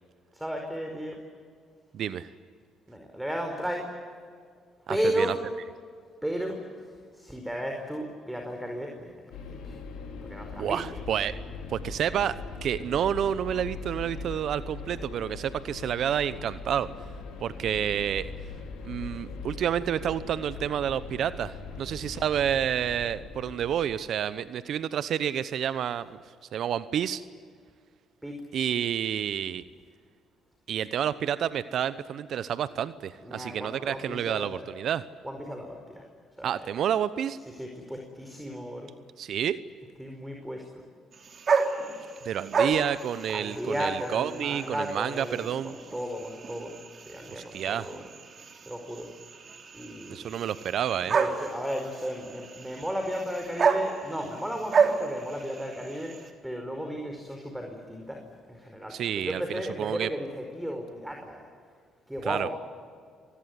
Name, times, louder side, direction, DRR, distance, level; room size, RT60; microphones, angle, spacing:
voice 1, 0.3-1.2 2.9-3.9 4.9-5.3 6.2-9.8 10.2-10.8 28.2-28.4 33.2-34.7 35.2-36.1 36.4-36.7 37.5-38.9 40.0-40.8 43.3-46.7 47.1-48.1 48.6-49.1 49.7-50.4 51.0-61.4 62.1-62.5, equal, 5° right, 3 dB, 4.9 m, -34 dB
voice 2, 1.9-2.3 4.9-5.3 10.6-11.4 11.7-16.9 17.4-18.3 18.8-26.2 26.5-27.2 28.5-29.6 30.7-35.1 36.4-37.4 39.2-39.6 42.2-45.8 47.3-47.9 50.1-51.2 58.9-60.1 62.3-62.5, right 9 dB, 65° right, 15 dB, 0.9 m, -29 dB
sound 1, 9.3-23.8, left 4 dB, 75° left, 4.9 m, -40 dB
sound 2, 41.1-56.3, right 5 dB, 50° right, 3.4 m, -31 dB
26.0 x 20.0 x 9.5 m, 2.1 s
supercardioid pair, 60°, 0 cm